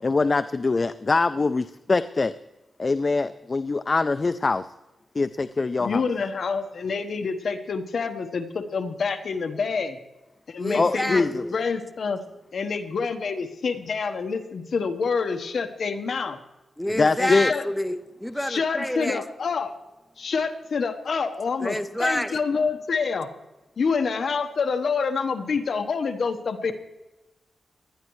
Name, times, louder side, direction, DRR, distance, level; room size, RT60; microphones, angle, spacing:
voice 1, 0.0-2.3 2.8-4.7 5.2-6.0 10.7-11.4 16.9-17.5, left 3 dB, 35° left, 13 dB, 0.4 m, -23 dB
voice 2, 5.8-10.0 10.5-12.2 12.5-16.4 17.2-17.6 18.4-19.7 20.2-23.3 23.8-26.7, left 5 dB, 65° left, 7 dB, 1.1 m, -27 dB
voice 3, 10.6-11.6 16.8-19.2 21.6-22.4, left 1 dB, 5° left, 9 dB, 0.7 m, -28 dB
19.0 x 11.5 x 3.2 m, 1.0 s
wide cardioid pair, 110°, 0 cm